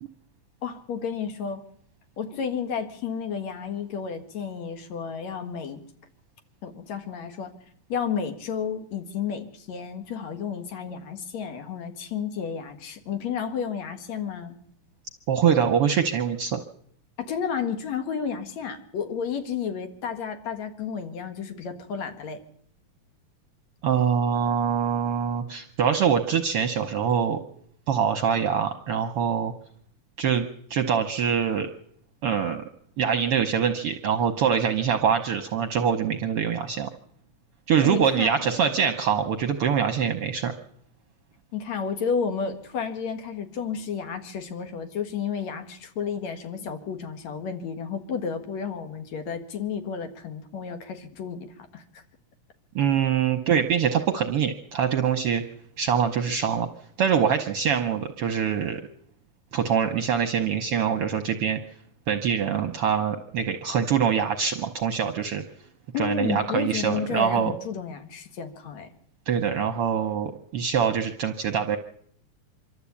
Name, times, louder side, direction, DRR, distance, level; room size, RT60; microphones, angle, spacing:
voice 1, 0.6-1.6 2.2-5.8 6.6-7.5 7.9-14.6 17.2-22.4 37.8-38.6 41.5-52.0 65.9-68.9, left 6 dB, 65° left, 8 dB, 3.0 m, -32 dB
voice 2, 15.3-16.6 23.8-27.4 27.9-29.5 30.2-31.7 32.2-32.6 33.0-36.9 37.7-40.5 52.7-55.4 55.8-56.7 57.0-58.8 59.5-61.6 62.1-65.4 66.0-67.5 69.3-71.8, right 7 dB, 65° right, 7 dB, 1.6 m, -24 dB
25.0 x 12.5 x 8.5 m, 0.66 s
omnidirectional pair, 3.4 m